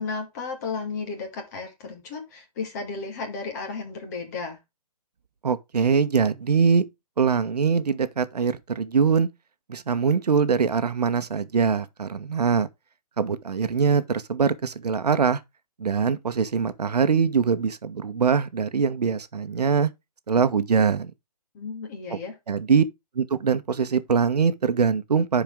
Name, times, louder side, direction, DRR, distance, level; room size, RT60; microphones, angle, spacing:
voice 1, 0.0-4.6 21.5-22.3, left 4 dB, 25° left, 2.5 m, -33 dB
voice 2, 5.4-6.8 7.2-9.3 9.7-12.7 13.2-15.4 15.8-19.9 20.3-21.1 22.1-22.2 22.5-22.8 23.1-25.4, right 6 dB, 75° right, 1.3 m, -23 dB
10.5 x 4.8 x 3.6 m
hypercardioid pair, 165°, 20 cm